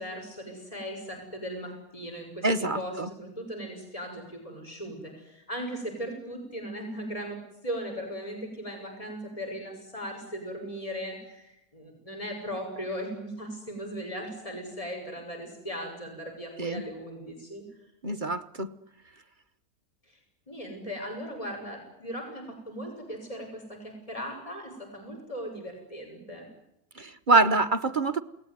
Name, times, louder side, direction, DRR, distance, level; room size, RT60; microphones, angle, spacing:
voice 1, 0.0-2.5 2.7-7.4 7.6-17.6 20.1-20.2 20.5-26.4, equal, 20° left, 6.8 m, -38 dB
voice 2, 2.4-3.1 16.6-16.8 18.0-18.7 27.0-28.2, right 3 dB, 35° right, 1.1 m, -25 dB
29.5 x 19.5 x 9.6 m
omnidirectional pair, 1.6 m